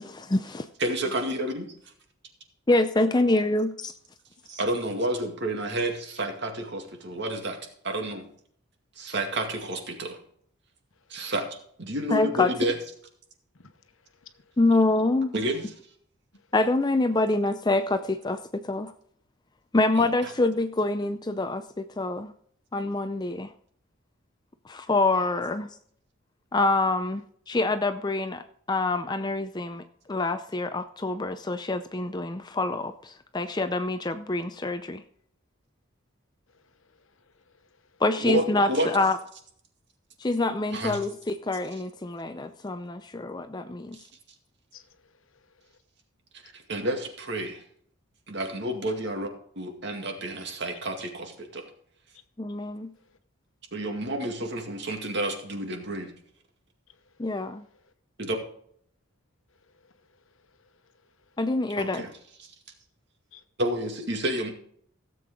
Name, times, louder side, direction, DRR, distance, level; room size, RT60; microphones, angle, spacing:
voice 1, 0.0-0.7 2.7-3.9 12.1-12.5 14.6-15.3 16.5-18.9 19.7-22.3 22.7-23.5 24.6-25.7 26.5-35.0 38.0-39.2 40.2-44.0 52.4-52.9 57.2-57.6 61.4-62.0, left 2 dB, 20° left, 0.5 m, -26 dB
voice 2, 0.8-1.6 4.5-7.6 7.8-8.3 9.0-10.2 11.1-11.5 11.8-12.7 15.3-15.6 20.0-20.1 38.2-38.9 40.7-41.0 46.4-47.6 48.3-49.3 49.6-51.6 53.7-56.1 58.2-58.4 61.8-62.1 63.6-64.5, right 1 dB, 50° right, 2.2 m, -30 dB
voice 3, 13.5-14.5 16.3-16.4 36.5-38.0 44.7-45.8 53.0-53.2 56.9-57.2 59.6-60.7 61.0-61.4 63.3-63.4, left 7 dB, 70° left, 1.1 m, -59 dB
16.5 x 7.7 x 3.7 m
head